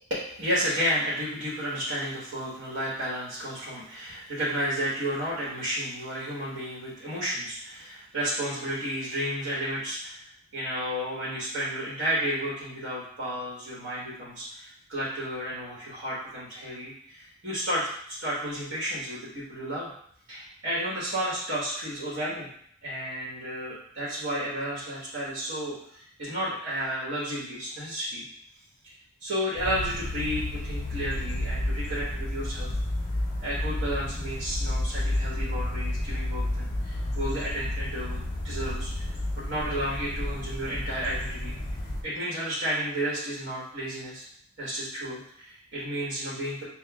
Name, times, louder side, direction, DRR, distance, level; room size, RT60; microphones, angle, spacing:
voice 1, 0.1-19.9 20.3-22.5 22.8-28.2 29.2-32.7 33.4-39.1 39.4-41.5 42.0-44.2 44.6-46.6, equal, 85° right, -8 dB, 1.2 m, -32 dB
sound 1, 29.5-42.0, left 1 dB, 40° left, 0.9 m, -31 dB
5.7 x 2.3 x 2.3 m, 0.65 s
head